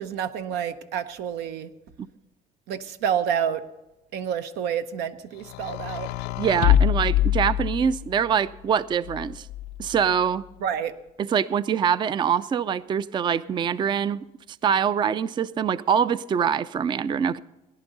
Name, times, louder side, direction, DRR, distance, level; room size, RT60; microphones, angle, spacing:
voice 1, 0.0-1.7 2.7-3.6 4.1-6.1 10.6-10.9, right 8 dB, 90° right, 10 dB, 0.8 m, -28 dB
sound 1, 5.4-8.2 9.1-10.0, left 12 dB, 85° left, 0.4 m, -24 dB
voice 2, 6.4-9.5 9.8-10.4 11.2-14.2 14.6-17.4, right 7 dB, 25° right, 17 dB, 0.3 m, -24 dB
18.0 x 10.5 x 3.9 m, 1.0 s
cardioid pair, 110°, 17 cm